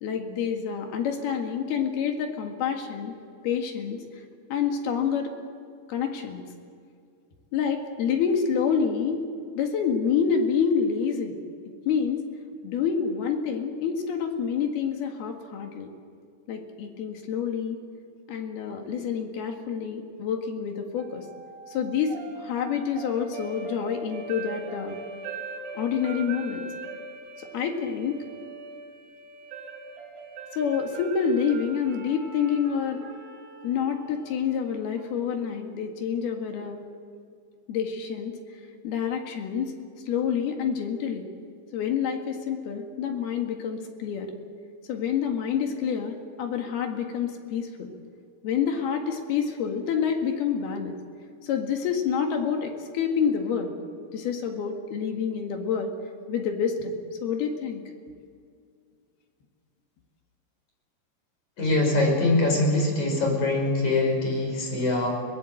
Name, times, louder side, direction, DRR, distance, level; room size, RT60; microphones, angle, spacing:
voice 1, 0.0-3.1 3.4-4.0 4.5-5.3 5.9-6.4 7.5-9.2 9.6-11.3 11.9-12.2 12.6-15.9 16.5-17.8 18.3-21.2 21.7-25.0 25.7-26.7 27.4-28.2 30.5-33.0 33.6-36.8 37.7-38.4 38.8-39.7 40.1-41.3 41.7-44.3 44.9-47.9 48.4-51.0 51.4-53.7 54.1-55.9 56.3-56.9 57.2-57.8, left 7 dB, 70° left, 3 dB, 3.7 m, -27 dB
sound 1, 21.0-35.1, right 4 dB, 75° right, 4.3 m, -41 dB
voice 2, 61.6-65.1, left 2 dB, 45° left, 1 dB, 6.4 m, -23 dB
23.5 x 19.0 x 7.8 m, 2.3 s
omnidirectional pair, 4.8 m